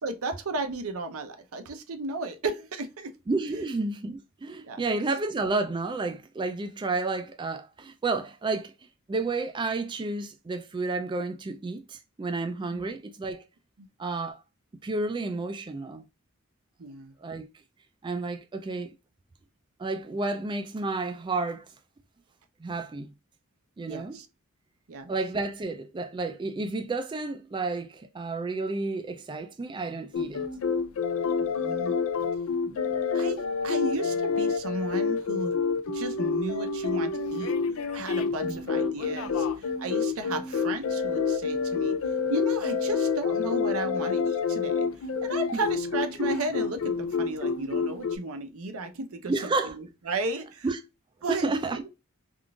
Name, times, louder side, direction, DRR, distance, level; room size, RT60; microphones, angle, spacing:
voice 1, 0.0-3.1 4.6-4.9 12.7-12.9 13.8-13.9 16.8-17.1 23.9-24.3 24.9-25.1 31.4-32.0 33.1-35.6 35.9-37.5 37.9-42.0 42.3-44.9 45.2-50.7 51.2-51.5, right 2 dB, 85° right, 0.7 m, -34 dB
voice 2, 3.3-8.7 9.1-13.4 14.0-14.4 14.8-16.0 17.2-17.5 18.0-18.9 19.8-21.7 22.6-23.1 23.8-24.2 25.1-30.5 32.7-32.8 38.4-38.6 45.5-45.6 49.3-49.7 50.6-50.8 51.3-51.8, right 3 dB, 20° right, 0.3 m, -31 dB
sound 1, 30.1-48.2, left 5 dB, 75° left, 0.4 m, -28 dB
3.6 x 2.5 x 2.3 m
head